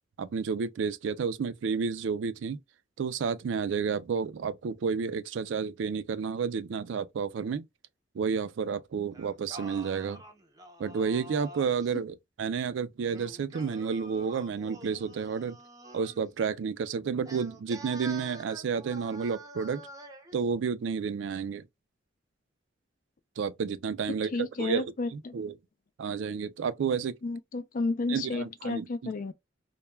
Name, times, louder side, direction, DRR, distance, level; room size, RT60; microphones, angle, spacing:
voice 1, 0.2-2.6 3.0-7.7 8.1-10.2 10.8-15.6 15.9-19.8 20.3-21.7 23.4-25.6 26.0-27.2 28.1-29.1, right 6 dB, 75° right, 0.4 m, -31 dB
Singing, 9.1-11.9 13.0-16.2 17.2-20.3, right 2 dB, 20° right, 0.5 m, -47 dB
voice 2, 24.3-25.4 27.2-29.3, left 3 dB, 45° left, 0.4 m, -32 dB
2.2 x 2.2 x 3.0 m
head